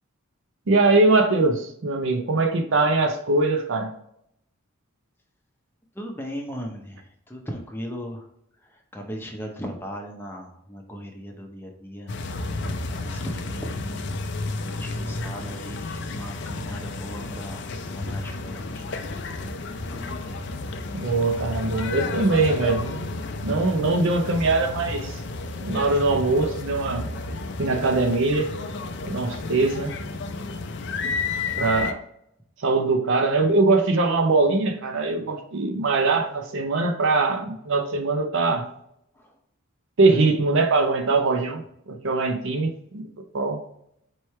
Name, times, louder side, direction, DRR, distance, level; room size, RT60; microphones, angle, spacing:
voice 1, 0.7-3.9 20.9-23.1 23.4-25.2 25.6-27.1 27.6-28.5 29.0-30.0 31.6-32.0 32.6-38.7 40.0-43.1 43.3-43.6, right 3 dB, 55° right, 6 dB, 0.5 m, -22 dB
voice 2, 5.9-8.3 8.6-12.5 12.9-13.8 14.6-18.9 19.9-20.5 39.1-39.3, equal, 10° left, 1 dB, 0.6 m, -37 dB
sound 1, 12.1-31.9, left 3 dB, 50° left, 0.4 m, -32 dB
4.5 x 3.1 x 3.1 m, 0.74 s
head